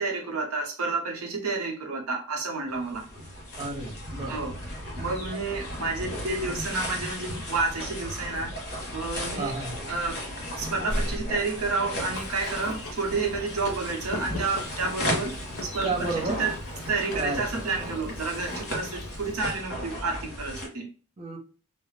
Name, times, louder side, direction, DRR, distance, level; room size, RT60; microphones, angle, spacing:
voice 1, 0.0-3.1 4.3-4.5 4.9-8.5 8.9-9.5 9.9-10.2 10.5-16.5 16.9-20.9, right 3 dB, 75° right, 2 dB, 0.7 m, -30 dB
sound 1, 2.7-20.7, equal, 50° left, 1.0 m, -35 dB
voice 2, 3.6-4.4 9.4-9.8 15.8-16.4 17.1-17.7 21.2-21.4, right 3 dB, 30° right, 1 dB, 0.6 m, -32 dB
sound 2, 3.9-4.6 6.8-6.9 7.8-8.5 9.4-9.5 9.9-12.7 13.3-13.4 16.0-18.2, equal, 25° left, 0.9 m, -40 dB
Chewing mastication, 12.1-19.3, left 2 dB, 70° left, 0.5 m, -42 dB
2.4 x 2.0 x 3.1 m, 0.37 s
head